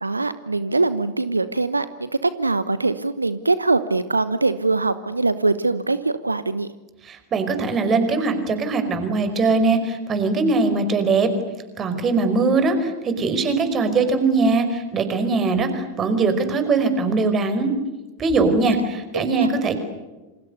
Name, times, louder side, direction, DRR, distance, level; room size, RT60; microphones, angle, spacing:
voice 1, 0.0-6.7 19.1-19.5, right 3 dB, 80° right, 14 dB, 1.0 m, -22 dB
voice 2, 7.0-11.3 11.8-17.7 18.2-19.8, right 3 dB, 25° right, 9 dB, 5.2 m, -21 dB
28.5 x 27.0 x 6.8 m, 1.2 s
figure-of-eight pair, 90°, 0 cm